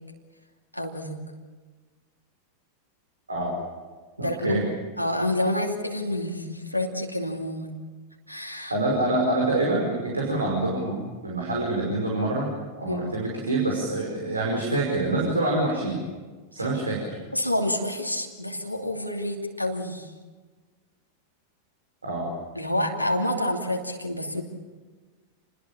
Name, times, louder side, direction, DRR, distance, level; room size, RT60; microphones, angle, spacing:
voice 1, 0.7-1.2 4.2-7.7 8.3-9.1 12.9-13.1 16.6-16.7 17.3-20.1 22.5-24.4, left 1 dB, 90° left, 1 dB, 2.7 m, -28 dB
voice 2, 4.2-4.6 8.7-12.5 12.8-16.0 16.5-17.2 22.0-22.3, right 2 dB, 80° right, -2 dB, 5.2 m, -26 dB
28.5 x 21.0 x 7.1 m, 1.4 s
figure-of-eight pair, 90°, 0 cm